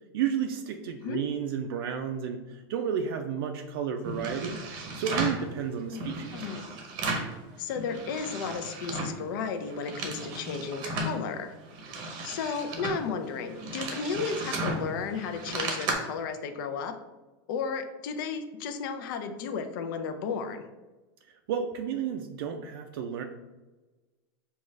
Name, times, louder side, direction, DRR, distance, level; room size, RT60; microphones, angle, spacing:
voice 1, 0.1-4.6 4.9-6.3 21.5-23.2, right 8 dB, 65° right, 4 dB, 0.4 m, -32 dB
sound 1, 4.0-5.4 5.9-7.4 7.7-9.2 9.6-11.2 11.6-15.9, right 2 dB, 35° right, 0.7 m, -35 dB
voice 2, 6.3-6.8 7.6-11.5 12.2-17.0 17.5-20.7, left 5 dB, 55° left, 7 dB, 0.4 m, -34 dB
5.1 x 2.4 x 3.1 m, 1.2 s
supercardioid pair, 160°, 13 cm